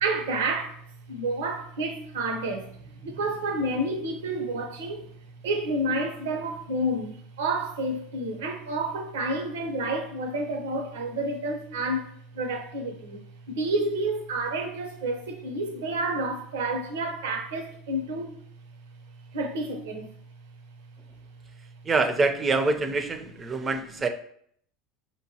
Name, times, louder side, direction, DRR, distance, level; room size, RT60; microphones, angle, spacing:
voice 1, 0.0-0.8 1.1-5.1 5.4-13.2 13.5-18.3 19.3-20.1, right 2 dB, 80° right, 0.7 m, -29 dB
voice 2, 21.9-24.1, right 3 dB, 25° right, 0.5 m, -25 dB
5.1 x 2.9 x 2.8 m
hypercardioid pair, 85°, 0 cm